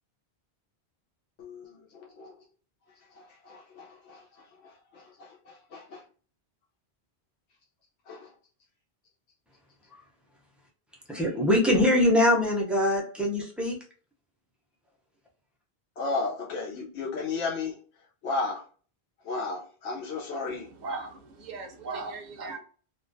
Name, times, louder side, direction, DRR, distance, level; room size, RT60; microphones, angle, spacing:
voice 1, 1.4-1.7 2.2-2.3 3.5-3.8 5.7-6.0 8.1-8.2 16.0-17.7 18.2-18.6 19.3-20.6, left 3 dB, 85° left, 0.9 m, -32 dB
voice 2, 11.1-13.8, left 1 dB, ahead, 0.3 m, -23 dB
voice 3, 20.5-22.6, right 3 dB, 55° right, 0.6 m, -38 dB
2.4 x 2.1 x 2.5 m
omnidirectional pair, 1.1 m